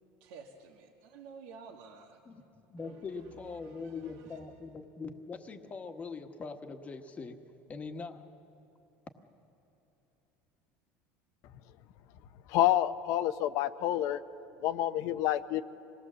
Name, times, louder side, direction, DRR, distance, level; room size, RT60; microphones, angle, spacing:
voice 1, 0.2-2.2 2.8-4.5, right 5 dB, 85° right, -1 dB, 1.6 m, -52 dB
voice 2, 2.2-7.4 7.7-8.2, left 4 dB, 25° left, 6 dB, 1.3 m, -42 dB
voice 3, 12.5-14.2 14.6-15.6, left 12 dB, 65° left, 12 dB, 0.8 m, -28 dB
26.5 x 19.0 x 7.5 m, 2.9 s
cardioid pair, 140°, 6 cm